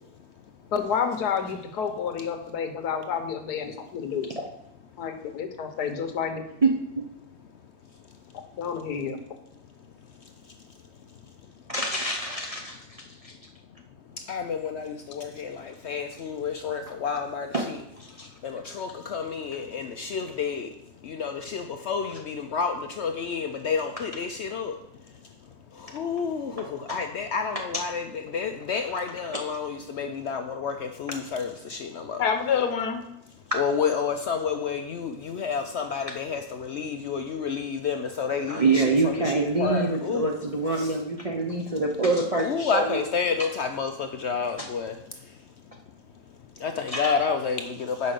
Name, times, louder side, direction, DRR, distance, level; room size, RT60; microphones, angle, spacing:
voice 1, 0.7-4.3 5.0-6.4 8.6-9.2 32.2-33.0, left 7 dB, 85° left, 6 dB, 1.5 m, -28 dB
voice 2, 11.7-12.8 13.2-13.3 17.5-17.7 18.0-18.3 22.1-22.2 26.6-27.0 29.3-29.4 38.5-43.1 43.4-43.5 44.6-44.7 46.9-47.1, right 3 dB, 50° right, 0 dB, 0.4 m, -26 dB
voice 3, 14.3-17.8 18.1-20.7 21.0-24.8 25.7-32.2 33.5-40.3 40.8-41.0 42.4-45.0 45.2-45.4 46.6-48.1, left 6 dB, 70° left, 6 dB, 0.6 m, -30 dB
5.5 x 5.2 x 6.5 m, 0.81 s
omnidirectional pair, 1.6 m